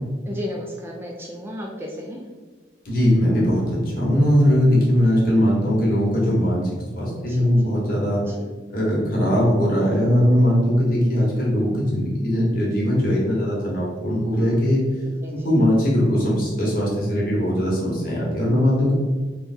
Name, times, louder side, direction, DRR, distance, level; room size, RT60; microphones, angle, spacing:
voice 1, 0.3-2.2 7.1-7.7 8.1-8.5 14.3-14.6 15.2-15.5, left 1 dB, 15° right, -1 dB, 0.4 m, -35 dB
voice 2, 2.8-8.2 8.7-14.8 15.4-18.9, equal, 50° left, -4 dB, 1.2 m, -20 dB
3.3 x 2.2 x 4.2 m, 1.4 s
head